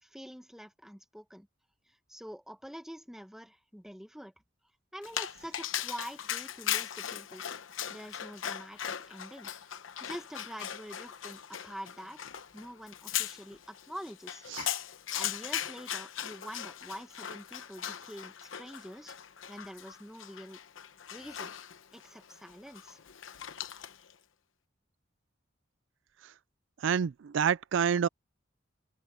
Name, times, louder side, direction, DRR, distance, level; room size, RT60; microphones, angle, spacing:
voice 1, 0.0-1.5 2.1-4.3 4.9-7.4 7.9-9.5 10.0-14.7 15.1-19.1 19.5-20.6 21.1-21.5 21.9-23.0, equal, ahead, 1.3 m, -46 dB
Dog, 5.0-24.1, left 10 dB, 80° left, 0.9 m, -39 dB
voice 2, 26.8-28.1, right 7 dB, 65° right, 0.4 m, -28 dB
open air
head